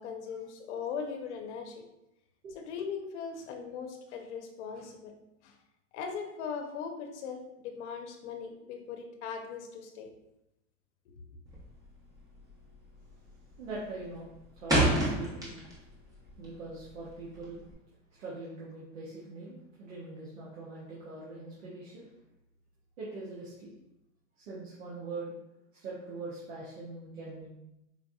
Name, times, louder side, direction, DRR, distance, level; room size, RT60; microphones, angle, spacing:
voice 1, 0.0-1.8 2.5-5.1 5.4-5.5 5.9-10.1, left 6 dB, 60° left, 5 dB, 0.8 m, -39 dB
sound 1, 11.5-11.9 12.2-12.5 12.8-13.3 13.6-16.0 16.3-17.7, right 1 dB, 10° right, 1.0 m, -29 dB
voice 2, 13.6-15.5 16.4-17.6 18.2-22.1 23.0-23.7 24.4-25.3 25.8-27.5, right 3 dB, 85° right, -7 dB, 1.1 m, -42 dB
4.5 x 2.6 x 2.4 m, 0.87 s
hypercardioid pair, 125°, 38 cm